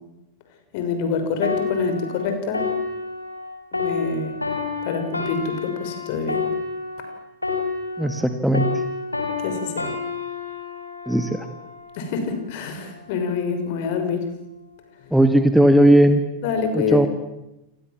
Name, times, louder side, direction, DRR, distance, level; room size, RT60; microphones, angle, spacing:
voice 1, 0.7-2.7 3.7-4.3 4.8-6.5 9.4-9.9 11.9-14.3 16.4-17.1, left 5 dB, 50° left, 7 dB, 6.2 m, -26 dB
sound 1, 1.4-8.3 8.5-12.1 12.8-13.0, left 4 dB, 85° left, 5.4 m, -29 dB
voice 2, 8.0-8.7 11.1-11.5 15.1-16.2 16.7-17.1, right 1 dB, ahead, 8 dB, 2.2 m, -16 dB
29.5 x 26.0 x 7.6 m, 0.92 s
figure-of-eight pair, 90°, 0 cm